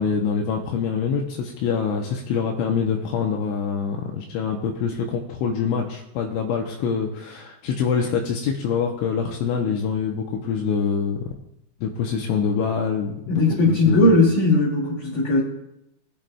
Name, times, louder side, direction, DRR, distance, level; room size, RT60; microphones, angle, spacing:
voice 1, 0.0-11.3 11.8-14.2, left 6 dB, 80° left, 1 dB, 3.0 m, -25 dB
voice 2, 13.3-15.4, left 2 dB, 50° left, -7 dB, 3.1 m, -18 dB
20.0 x 8.9 x 2.3 m, 0.82 s
omnidirectional pair, 5.8 m